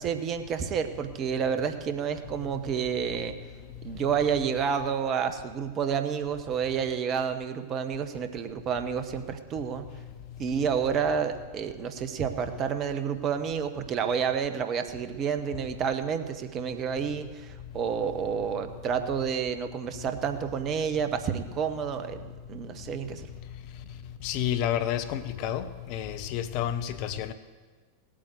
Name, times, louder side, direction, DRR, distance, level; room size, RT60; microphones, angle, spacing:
voice 1, 0.0-3.3 3.8-9.9 10.4-22.2 22.5-23.3, right 7 dB, 30° right, 9 dB, 1.1 m, -29 dB
voice 2, 24.2-25.6 25.9-27.3, left 10 dB, 45° left, 11 dB, 0.8 m, -29 dB
17.0 x 8.9 x 8.0 m, 1.4 s
figure-of-eight pair, 90°, 0 cm